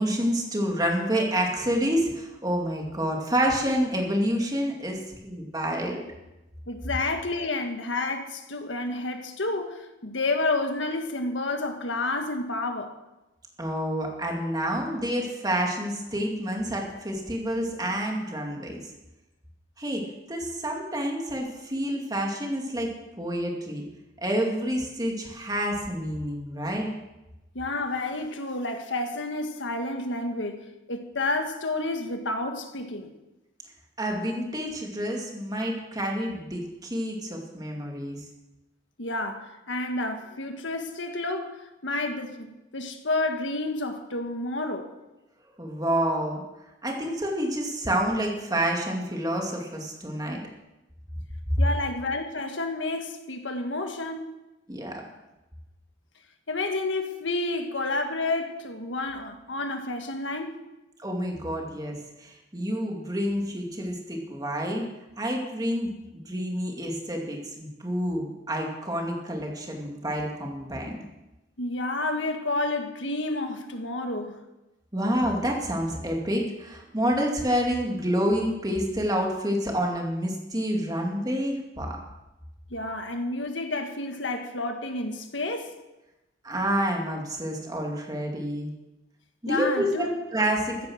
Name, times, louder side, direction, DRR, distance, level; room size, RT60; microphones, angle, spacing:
voice 1, 0.0-6.0 13.6-18.8 19.8-20.0 20.3-22.9 23.2-23.8 24.2-26.9 34.0-38.2 45.6-46.4 46.8-50.4 54.7-55.0 61.0-64.9 65.2-71.0 74.9-82.0 86.4-88.7 89.4-90.9, equal, 20° right, 2.4 m, -28 dB
voice 2, 6.7-12.9 27.5-33.1 39.0-44.9 51.6-54.3 56.5-60.6 71.6-74.4 82.7-85.7 89.5-90.1, left 2 dB, 80° left, 1.6 m, -30 dB
15.0 x 9.5 x 6.3 m
head